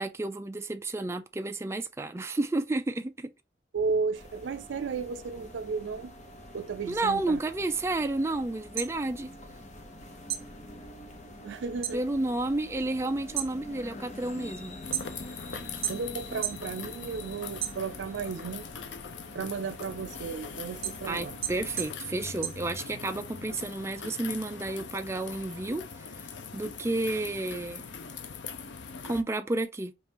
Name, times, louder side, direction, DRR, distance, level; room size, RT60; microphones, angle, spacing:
voice 1, 0.0-3.3 6.9-9.3 11.9-14.8 21.1-25.8 26.2-27.8 29.0-29.9, right 2 dB, 15° right, 0.3 m, -31 dB
voice 2, 3.7-6.1 6.5-7.4 11.4-12.0 15.9-18.7 19.3-21.4, right 5 dB, 80° right, 0.4 m, -34 dB
sound 1, 4.1-21.9, left 1 dB, 40° left, 0.9 m, -46 dB
sound 2, 8.7-10.0 10.3-12.0 12.4-12.8 13.2-15.4 15.8-16.7 17.1-18.3 18.7-23.2, right 11 dB, 55° right, 0.9 m, -36 dB
sound 3, 14.8-29.2, left 6 dB, 75° left, 0.6 m, -42 dB
5.3 x 2.5 x 2.9 m
head